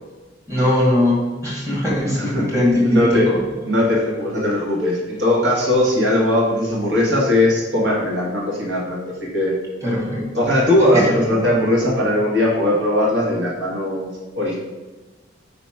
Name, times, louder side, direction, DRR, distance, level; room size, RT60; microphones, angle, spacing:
voice 1, 0.5-3.4 3.8-3.9 9.8-10.3 10.9-11.5, left 1 dB, 15° right, -5 dB, 2.3 m, -20 dB
voice 2, 2.1-2.4 2.8-3.3 3.6-9.5 10.3-14.6, left 1 dB, 70° right, -3 dB, 1.9 m, -19 dB
5.1 x 4.1 x 6.0 m, 1.2 s
head